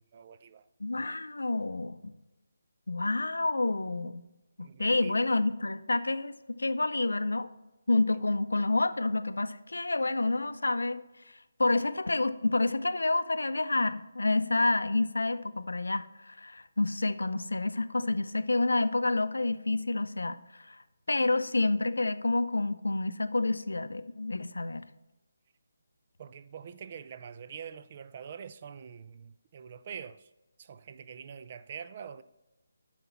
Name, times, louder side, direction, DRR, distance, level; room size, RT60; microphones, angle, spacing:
voice 1, 0.0-0.7 4.6-5.2 26.2-30.3 30.6-32.2, right 7 dB, 35° right, 0.4 m, -45 dB
voice 2, 0.8-2.1 2.9-4.2 4.6-7.5 7.9-11.0 11.3-20.8 21.1-24.8, left 2 dB, 85° left, 0.5 m, -29 dB
7.9 x 5.8 x 4.5 m
figure-of-eight pair, 160°, 0 cm